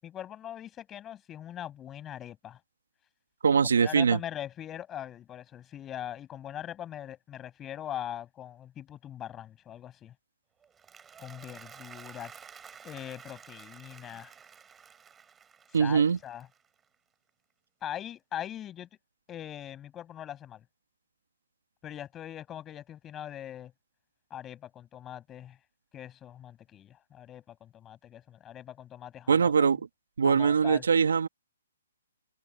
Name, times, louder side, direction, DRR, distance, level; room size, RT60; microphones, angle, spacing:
voice 1, 0.0-2.6 3.8-10.1 11.2-12.3 12.8-14.3 15.7-16.5 17.8-18.9 19.3-20.6 21.8-23.7 24.3-25.6 25.9-29.7 30.2-30.8, left 11 dB, 10° left, 7.3 m, -41 dB
voice 2, 3.4-4.2 15.7-16.2 29.3-29.8 30.2-31.3, right 6 dB, 80° right, 1.7 m, -22 dB
Applause, 10.6-16.9, right 7 dB, 5° right, 7.8 m, -51 dB
hypercardioid pair, 175°, 0 cm